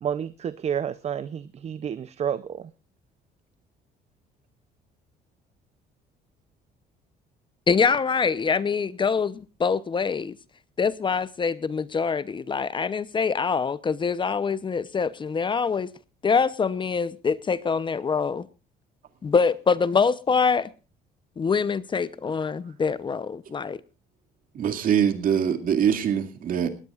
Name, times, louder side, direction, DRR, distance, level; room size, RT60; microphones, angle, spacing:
voice 1, 0.0-2.7, right 8 dB, 40° right, 0.6 m, -30 dB
voice 2, 7.7-10.4 10.8-15.9 16.2-18.5 19.2-20.7 21.4-23.8, left 5 dB, 30° left, 0.7 m, -24 dB
voice 3, 24.5-26.7, right 8 dB, 55° right, 2.3 m, -23 dB
20.0 x 17.5 x 2.4 m
cardioid pair, 110°, 17 cm